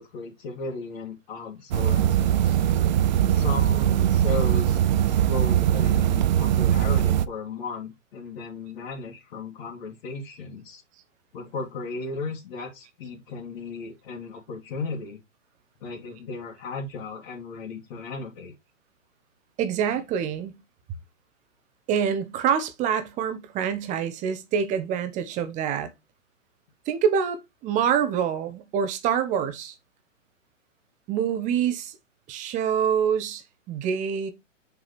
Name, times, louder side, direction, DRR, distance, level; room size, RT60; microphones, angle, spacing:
voice 1, 0.0-2.6 3.3-10.8 11.3-15.2 15.8-18.5, left 3 dB, 50° left, 2.4 m, -36 dB
sound 1, 1.7-7.3, right 10 dB, 35° right, 0.4 m, -21 dB
voice 2, 19.6-20.6 21.9-25.9 26.9-29.7 31.1-32.0 32.3-34.3, right 8 dB, 20° right, 0.9 m, -26 dB
6.4 x 4.9 x 3.3 m
hypercardioid pair, 135°, 38 cm